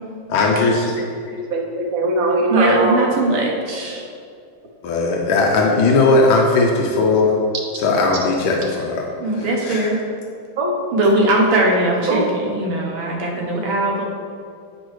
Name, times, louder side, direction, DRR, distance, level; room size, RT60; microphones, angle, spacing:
voice 1, 0.3-0.9 4.8-7.4 7.8-9.1 9.4-9.9, left 3 dB, 80° left, -1 dB, 1.5 m, -17 dB
voice 2, 1.3-3.0 10.6-10.8 12.1-12.3, right 2 dB, 60° right, 0 dB, 1.0 m, -20 dB
voice 3, 2.5-4.0 9.2-10.0 10.9-14.0, right 1 dB, 90° right, -2 dB, 2.0 m, -19 dB
7.7 x 6.2 x 3.1 m, 2.3 s
omnidirectional pair, 2.2 m